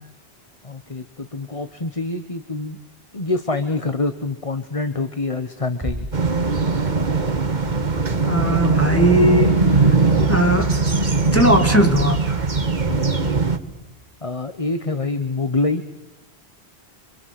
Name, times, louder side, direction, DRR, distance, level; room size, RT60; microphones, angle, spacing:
voice 1, 0.6-2.8 3.1-6.1 12.9-13.4 14.2-15.8, left 3 dB, 30° left, 1.4 m, -26 dB
Bass drum, 5.8-7.2, right 1 dB, 20° right, 1.9 m, -33 dB
sound 1, 6.1-13.6, right 4 dB, 45° right, 1.7 m, -20 dB
sound 2, 7.5-13.7, left 5 dB, 65° left, 6.0 m, -31 dB
voice 2, 8.2-9.6 10.3-10.7 11.3-12.4, equal, 10° left, 2.4 m, -18 dB
29.5 x 26.0 x 7.9 m
omnidirectional pair, 1.1 m